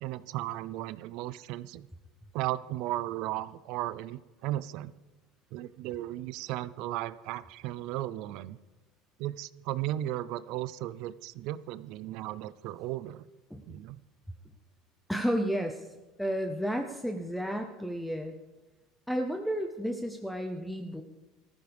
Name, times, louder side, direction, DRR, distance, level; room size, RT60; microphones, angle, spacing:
voice 1, 0.0-1.9 2.3-4.9 5.5-8.6 9.2-13.2 13.7-14.0, right 14 dB, 60° right, 17 dB, 0.5 m, -35 dB
voice 2, 15.1-15.9 16.2-18.4 19.1-21.0, equal, ahead, 5 dB, 0.7 m, -32 dB
19.5 x 14.5 x 3.5 m, 1.2 s
cardioid pair, 145°, 0 cm